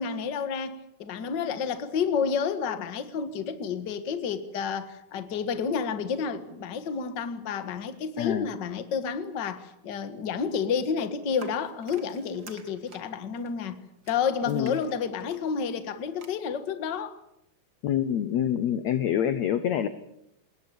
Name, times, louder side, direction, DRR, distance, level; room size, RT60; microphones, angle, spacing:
voice 1, 0.0-13.8 14.1-17.2, left 6 dB, 50° left, 1.4 m, -30 dB
voice 2, 8.2-8.5 14.5-14.7 17.8-19.9, left 9 dB, 75° left, 1.6 m, -26 dB
sound 1, 11.3-16.3, right 4 dB, 35° right, 1.9 m, -51 dB
27.0 x 20.5 x 7.2 m
omnidirectional pair, 4.5 m